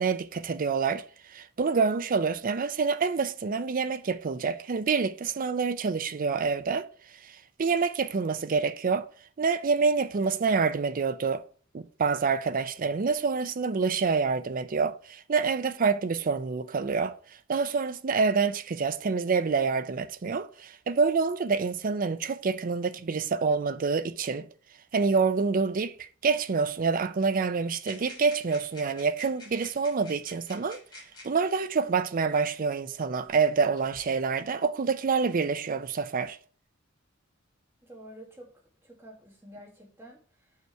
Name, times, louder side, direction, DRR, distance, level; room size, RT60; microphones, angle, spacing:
voice 1, 0.0-6.9 7.2-9.1 9.4-11.4 11.7-24.5 24.9-30.8 31.2-36.4, right 5 dB, 45° right, 0.5 m, -27 dB
sound 1, 27.8-31.4 32.4-32.5 33.3-34.0, left 1 dB, 20° left, 3.6 m, -49 dB
voice 2, 37.8-38.5 38.8-40.6, equal, 10° right, 1.8 m, -49 dB
6.2 x 5.6 x 4.5 m
head